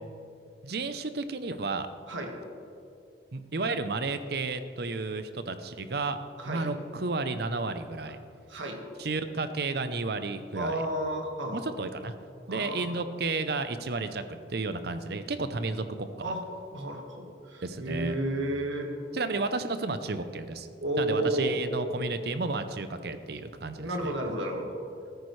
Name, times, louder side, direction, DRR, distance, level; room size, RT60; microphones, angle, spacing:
voice 1, 0.6-1.9 3.3-6.2 6.4-8.2 9.0-10.8 11.5-12.1 12.5-14.2 14.5-16.3 17.6-18.2 19.1-20.7 21.0-24.1, right 3 dB, 55° right, 10 dB, 0.6 m, -32 dB
voice 2, 8.5-8.8 10.5-11.7 12.5-12.9 16.2-16.4 16.7-18.9 20.8-21.6 23.8-24.7, right 1 dB, 85° right, 2 dB, 1.7 m, -32 dB
14.0 x 14.0 x 3.2 m, 2.5 s
head